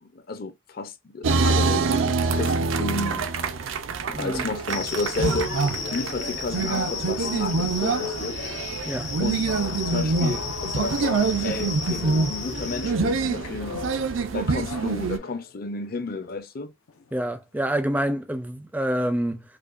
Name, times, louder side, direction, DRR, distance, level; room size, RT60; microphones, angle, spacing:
voice 1, 0.0-3.3 4.2-5.5 5.9-8.4 9.2-9.5 9.9-13.8 14.3-16.7, left 3 dB, 45° left, 0.5 m, -32 dB
sound 1, 1.2-15.2, right 4 dB, 75° right, 0.5 m, -26 dB
voice 2, 4.1-4.5 8.9-9.1 17.1-19.4, right 1 dB, 10° right, 0.4 m, -27 dB
sound 2, 4.7-12.9, left 6 dB, 60° left, 1.0 m, -35 dB
sound 3, 5.1-15.5 16.0-16.3 16.9-17.2 17.6-17.9, left 3 dB, 90° left, 0.6 m, -38 dB
5.0 x 2.2 x 2.4 m
head